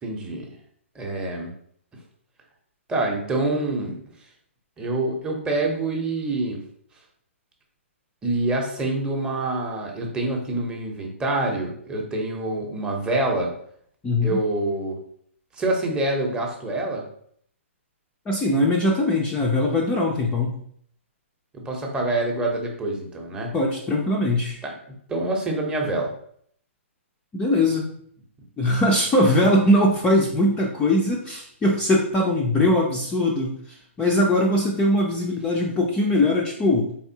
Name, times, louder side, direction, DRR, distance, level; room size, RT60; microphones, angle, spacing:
voice 1, 0.0-0.5 0.9-1.5 2.9-4.0 4.8-6.6 8.2-13.5 14.2-15.0 15.5-17.0 21.5-23.5 24.6-24.7 25.1-26.1, right 2 dB, 10° right, 0 dB, 0.8 m, -26 dB
voice 2, 14.0-14.4 18.3-20.6 23.5-24.6 27.3-27.8 28.6-36.9, left 1 dB, 15° left, -1 dB, 0.5 m, -21 dB
4.0 x 3.4 x 2.8 m, 0.64 s
hypercardioid pair, 140°, 7 cm